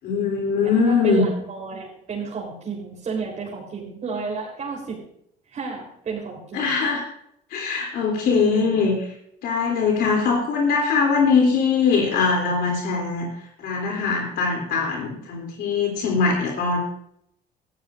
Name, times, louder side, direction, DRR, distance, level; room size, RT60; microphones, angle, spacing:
voice 1, 0.0-1.2 6.5-7.0 7.5-8.9 9.4-13.3 13.6-16.8, left 5 dB, 75° left, 0 dB, 3.3 m, -21 dB
voice 2, 0.6-5.0 5.5-6.9 8.2-8.8, right 4 dB, 45° right, -4 dB, 3.9 m, -32 dB
18.5 x 12.5 x 2.6 m, 0.71 s
cardioid pair, 110°, 17 cm